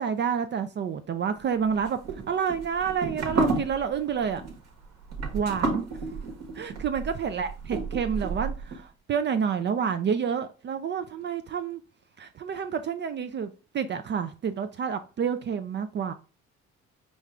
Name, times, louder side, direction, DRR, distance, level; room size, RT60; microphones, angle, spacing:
voice 1, 0.0-2.0 2.3-4.4 5.3-5.8 6.6-11.8 12.2-16.1, right 7 dB, 40° right, 0.4 m, -29 dB
sound 1, 1.7-8.8, right 3 dB, 60° right, 1.2 m, -31 dB
5.2 x 2.4 x 3.1 m
cardioid pair, 80°, 29 cm